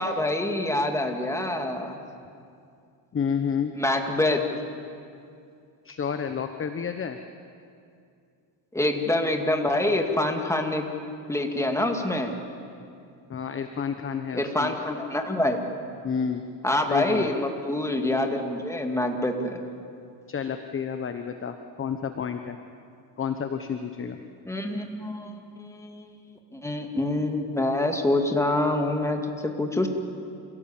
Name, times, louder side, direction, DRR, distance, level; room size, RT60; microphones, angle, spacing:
voice 1, 0.0-2.0 3.7-4.4 8.7-10.8 11.3-12.4 14.3-15.7 16.6-19.6 24.5-29.9, left 1 dB, 5° left, 3 dB, 2.4 m, -26 dB
voice 2, 3.1-3.7 5.8-7.2 13.3-14.7 16.0-16.4 16.9-17.3 20.3-22.6 23.2-24.2, left 7 dB, 25° left, 8 dB, 1.0 m, -30 dB
28.0 x 17.5 x 7.3 m, 2.5 s
cardioid pair, 105°, 47 cm